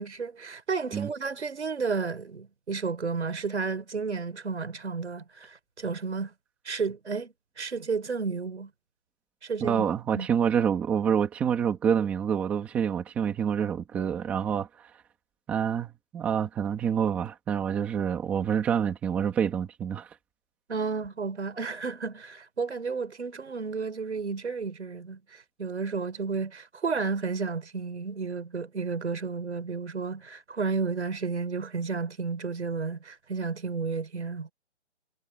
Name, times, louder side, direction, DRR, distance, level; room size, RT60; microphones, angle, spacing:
voice 1, 0.0-6.3 6.6-8.7 9.4-9.8 10.1-10.3 20.7-34.5, right 4 dB, 70° right, 5.1 m, -32 dB
voice 2, 9.6-14.9 15.5-20.1, right 8 dB, 5° right, 1.7 m, -27 dB
hypercardioid pair, 175°, 35 cm